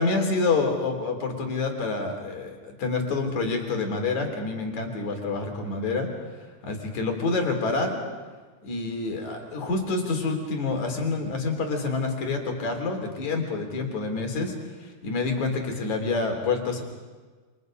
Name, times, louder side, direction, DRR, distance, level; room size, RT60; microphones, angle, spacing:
voice 1, 0.0-6.1 6.6-8.0 8.6-16.8, left 3 dB, 65° left, 3 dB, 4.8 m, -27 dB
28.5 x 27.5 x 5.3 m, 1.4 s
omnidirectional pair, 3.6 m